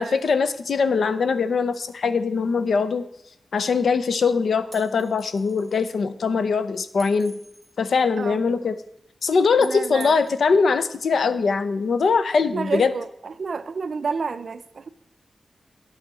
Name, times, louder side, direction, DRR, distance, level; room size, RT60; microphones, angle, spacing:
voice 1, 0.0-3.1 3.5-7.4 7.8-8.8 9.2-12.9, left 5 dB, 80° left, 0.6 m, -22 dB
sound 1, 4.7-5.8 7.0-7.7 9.6-10.4, right 1 dB, 15° left, 2.5 m, -45 dB
voice 2, 9.6-10.2 12.5-14.9, right 5 dB, 60° right, 0.4 m, -30 dB
9.6 x 5.0 x 7.5 m
wide cardioid pair, 145°, 0 cm